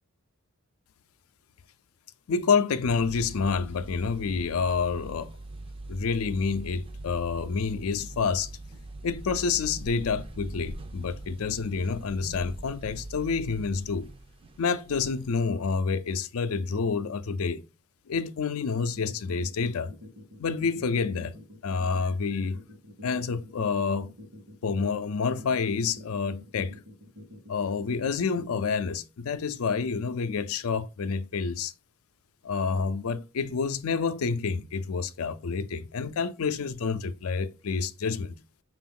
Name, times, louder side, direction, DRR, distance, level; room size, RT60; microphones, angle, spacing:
voice 1, 2.3-5.3 5.9-8.5 9.0-14.1 14.6-17.6 18.1-19.9 20.4-21.3 21.6-22.6 23.0-24.1 24.6-26.8 27.5-31.7 32.4-38.3, left 5 dB, 75° left, 0.4 m, -28 dB
sound 1, 2.9-15.5, right 2 dB, 25° right, 0.4 m, -42 dB
sound 2, 18.9-28.9, left 1 dB, 65° right, 1.0 m, -47 dB
5.9 x 2.5 x 3.6 m
head